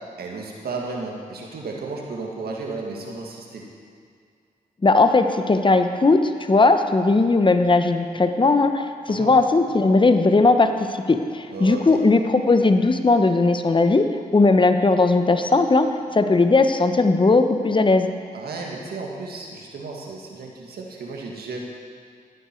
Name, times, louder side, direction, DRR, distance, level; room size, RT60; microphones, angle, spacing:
voice 1, 0.2-3.6 9.1-9.3 11.5-11.8 18.3-21.6, right 3 dB, 85° right, -1 dB, 1.8 m, -33 dB
voice 2, 4.8-18.1, left 3 dB, 30° left, 7 dB, 0.9 m, -18 dB
14.5 x 9.5 x 4.5 m, 2.2 s
cardioid pair, 50°, 16 cm